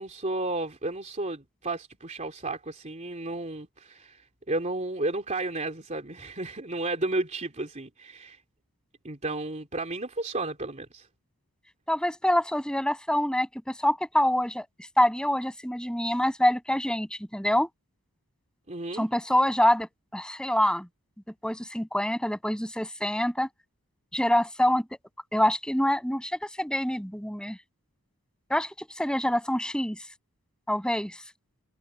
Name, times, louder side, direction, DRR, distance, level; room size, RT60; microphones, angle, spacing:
voice 1, 0.0-4.2 4.5-8.4 9.0-11.1 18.7-19.1, right 2 dB, 30° right, 3.1 m, -32 dB
voice 2, 11.9-14.7 15.0-17.7 18.9-20.9 21.4-23.5 24.1-24.8 25.3-27.6 28.5-30.0 30.7-31.2, left 1 dB, 5° left, 7.6 m, -26 dB
head